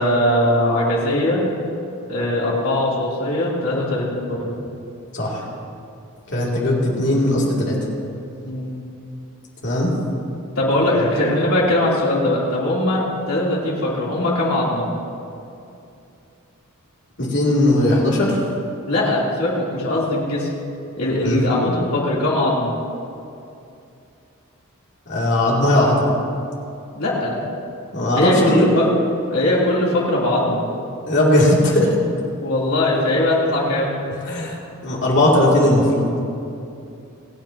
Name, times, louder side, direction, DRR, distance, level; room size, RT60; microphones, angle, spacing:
voice 1, 0.0-1.4 2.1-4.6 8.4-8.8 10.5-14.9 18.9-20.5 21.0-22.7 26.9-27.4 28.2-28.9 29.3-30.6 32.4-33.9, left 1 dB, 75° left, -6 dB, 3.3 m, -20 dB
voice 2, 6.3-7.8 9.6-9.9 17.2-18.4 21.2-21.4 25.1-26.0 27.9-28.7 31.1-31.9 34.3-34.6 34.8-36.1, left 1 dB, 55° left, -5 dB, 2.9 m, -18 dB
27.0 x 9.1 x 3.0 m, 2.6 s
head